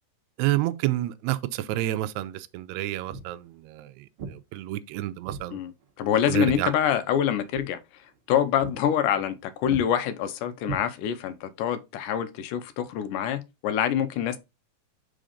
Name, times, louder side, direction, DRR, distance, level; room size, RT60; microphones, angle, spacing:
voice 1, 0.4-5.6 6.3-6.7, right 15 dB, 85° right, 1.6 m, -29 dB
Walk footsteps, 3.1-3.4 4.2-4.4 5.3-5.5 5.8-7.2 7.5-7.7 8.1-8.3 8.6-8.8 9.1-9.4 9.7-9.9 10.6-11.3, right 5 dB, 60° right, 1.4 m, -38 dB
voice 2, 6.0-7.8 8.3-14.4, left 9 dB, 85° left, 2.2 m, -25 dB
5.0 x 3.8 x 5.0 m
omnidirectional pair, 3.7 m